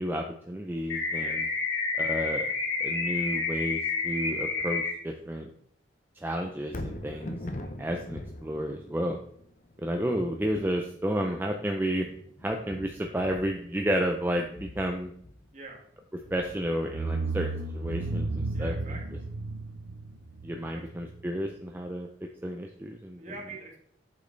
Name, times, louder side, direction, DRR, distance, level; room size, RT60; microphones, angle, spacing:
voice 1, 0.0-1.5 2.0-2.5 2.8-5.5 6.2-7.4 7.8-9.2 9.8-12.1 12.4-15.1 16.3-18.9 20.4-22.1 22.4-23.2, equal, 10° right, 2 dB, 0.5 m, -31 dB
sound 1, 0.9-4.9, left 4 dB, 75° left, 2.1 m, -29 dB
Thunder, 6.6-20.8 21.3-21.4, left 1 dB, 40° left, 0.7 m, -44 dB
voice 2, 15.5-15.8 18.5-19.2 20.7-20.8 23.2-23.8, right 3 dB, 40° right, -1 dB, 2.0 m, -44 dB
sound 2, 16.3-16.5 16.9-21.5, right 3 dB, 90° right, 0.7 m, -33 dB
8.5 x 6.2 x 3.2 m, 0.64 s
head